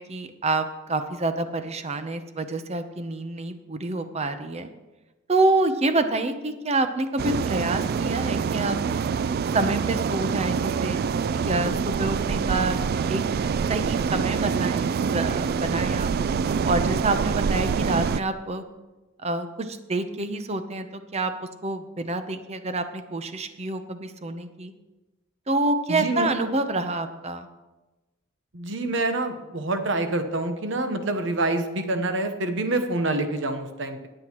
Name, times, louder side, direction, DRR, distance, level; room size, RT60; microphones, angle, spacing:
voice 1, 0.0-4.7 5.3-9.0 9.5-11.0 11.3-12.8 13.1-13.2 13.7-16.1 16.6-18.6 19.2-21.3 21.6-24.7 25.5-27.5, right 2 dB, 35° right, 9 dB, 0.7 m, -27 dB
sound 1, 7.2-18.2, right 6 dB, 50° right, 0.3 m, -25 dB
voice 2, 25.9-26.3 28.5-34.1, right 2 dB, 65° right, 7 dB, 1.1 m, -26 dB
21.5 x 7.7 x 3.0 m, 1.1 s
head